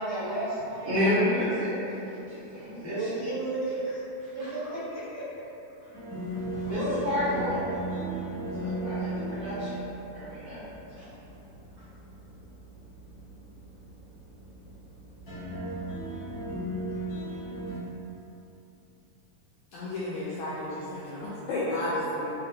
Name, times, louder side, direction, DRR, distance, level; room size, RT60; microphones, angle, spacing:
voice 1, 0.0-0.9 2.8-4.0 4.3-5.4 6.6-7.0, right 1 dB, 55° right, -17 dB, 0.5 m, -33 dB
voice 2, 0.8-2.0 2.3-3.2 4.4-4.5 6.7-7.6 8.6-9.9 10.1-10.6 11.0-11.1, left 1 dB, 80° right, -14 dB, 1.2 m, -30 dB
sound 1, 5.9-17.7, right 1 dB, 70° left, 0.9 m, -37 dB
voice 3, 19.7-22.3, left 1 dB, 85° left, -9 dB, 1.5 m, -32 dB
5.2 x 2.1 x 2.7 m, 3.0 s
omnidirectional pair, 3.7 m